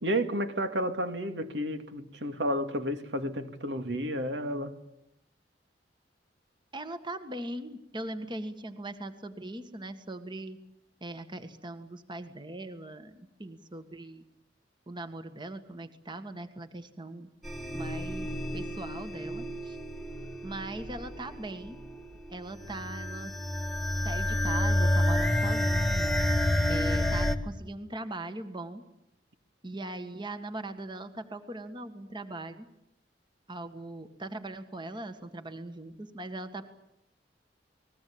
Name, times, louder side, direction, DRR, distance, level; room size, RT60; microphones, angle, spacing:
voice 1, 0.0-4.8, equal, 80° right, 2.4 m, -31 dB
voice 2, 6.7-10.6 11.0-14.2 14.9-17.3 17.7-19.8 20.4-21.8 22.3-23.3 24.0-26.1 26.7-28.8 29.6-32.7 33.5-36.6, right 2 dB, 25° right, 1.7 m, -40 dB
sound 1, 17.4-27.4, left 1 dB, ahead, 1.9 m, -29 dB
29.5 x 21.0 x 8.7 m
head